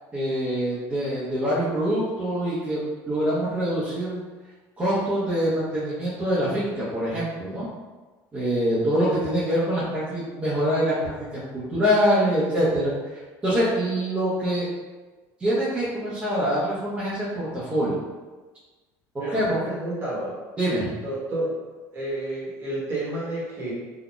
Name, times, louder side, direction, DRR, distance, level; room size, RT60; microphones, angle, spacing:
voice 1, 0.1-4.2 4.8-7.7 8.3-12.9 13.4-14.7 15.4-18.0 19.1-19.6 20.6-20.9, equal, 15° right, -12 dB, 0.9 m, -24 dB
voice 2, 19.2-20.3 21.0-21.5 21.9-23.7, right 1 dB, 30° right, -7 dB, 1.2 m, -30 dB
3.8 x 2.8 x 2.4 m, 1.3 s
cardioid pair, 150°, 8 cm